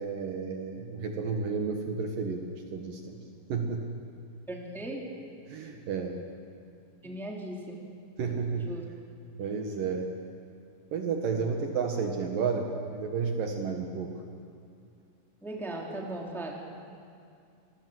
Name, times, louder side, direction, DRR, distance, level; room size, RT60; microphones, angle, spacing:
voice 1, 0.0-2.4 2.7-3.2 3.5-4.0 5.5-6.2 8.2-8.7 9.4-10.1 10.9-14.1, right 5 dB, 65° right, 3 dB, 2.9 m, -31 dB
voice 2, 4.5-5.1 7.0-7.8 8.5-8.9 15.4-16.5, right 1 dB, ahead, -1 dB, 2.5 m, -38 dB
26.5 x 20.0 x 7.9 m, 2.5 s
omnidirectional pair, 4.7 m